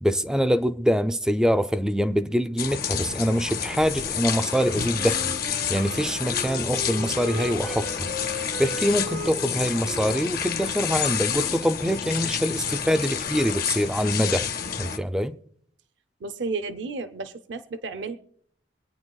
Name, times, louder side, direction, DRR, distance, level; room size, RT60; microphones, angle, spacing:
voice 1, 0.0-14.5 14.8-15.4, equal, 5° right, 0.4 m, -25 dB
sound 1, 2.6-15.0, left 7 dB, 55° left, 0.7 m, -29 dB
Wind instrument woodwind instrument, 4.9-11.7, equal, 90° right, 2.0 m, -38 dB
voice 2, 16.2-18.2, right 3 dB, 70° right, 0.6 m, -32 dB
25.0 x 9.0 x 2.3 m
head